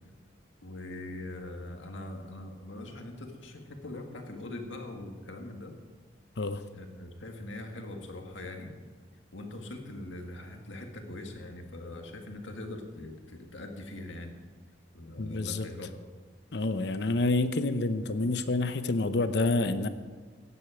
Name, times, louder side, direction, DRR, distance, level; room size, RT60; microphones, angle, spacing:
voice 1, 0.6-5.7 6.7-8.7 9.3-14.4 14.9-15.9, left 1 dB, 90° left, 3 dB, 1.9 m, -42 dB
voice 2, 15.2-15.7 16.5-19.9, left 2 dB, 65° left, 11 dB, 0.7 m, -28 dB
15.5 x 9.9 x 5.0 m, 1.4 s
head